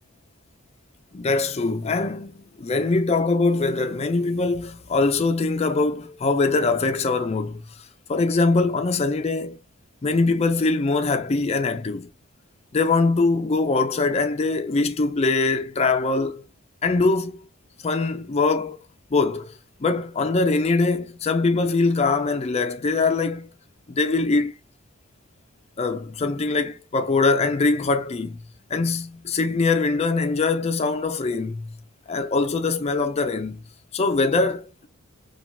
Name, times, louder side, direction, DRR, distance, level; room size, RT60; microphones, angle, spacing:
voice 1, 1.1-7.6 8.1-9.6 10.0-12.1 12.7-16.4 16.8-17.5 17.8-18.8 19.1-19.5 19.8-23.5 23.9-24.5 25.8-28.4 28.7-31.8 32.1-33.6 33.9-34.9, left 3 dB, 30° left, 0.4 m, -22 dB
2.9 x 2.3 x 2.9 m
head